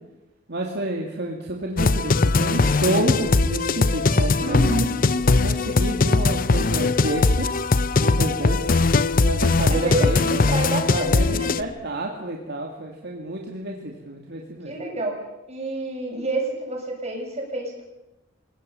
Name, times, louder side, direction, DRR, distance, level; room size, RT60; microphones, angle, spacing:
voice 1, 0.5-4.6 5.4-7.5 8.0-8.6 9.2-10.4 10.9-14.7, right 1 dB, 60° right, 0 dB, 2.6 m, -29 dB
sound 1, 1.8-11.6, left 3 dB, 45° left, 0.7 m, -20 dB
voice 2, 4.4-4.9 9.6-11.6 14.6-17.8, right 1 dB, 35° right, 0 dB, 7.4 m, -28 dB
28.5 x 17.5 x 7.1 m, 0.95 s
head